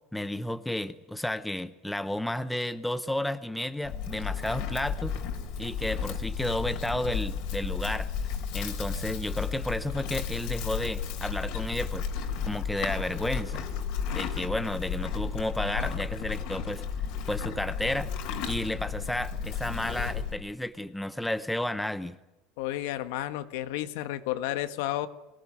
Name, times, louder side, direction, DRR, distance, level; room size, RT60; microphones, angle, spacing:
voice 1, 0.1-5.1 5.6-8.1 8.5-13.7 14.1-16.8 17.3-18.1 18.5-22.2, left 1 dB, 5° left, 12 dB, 0.8 m, -32 dB
Livestock farm animals working animals, 3.8-20.4, left 7 dB, 55° left, 3.5 m, -33 dB
voice 2, 22.6-25.1, left 14 dB, 75° left, 11 dB, 1.6 m, -32 dB
24.5 x 17.5 x 9.4 m, 1.0 s
cardioid pair, 160°, 0 cm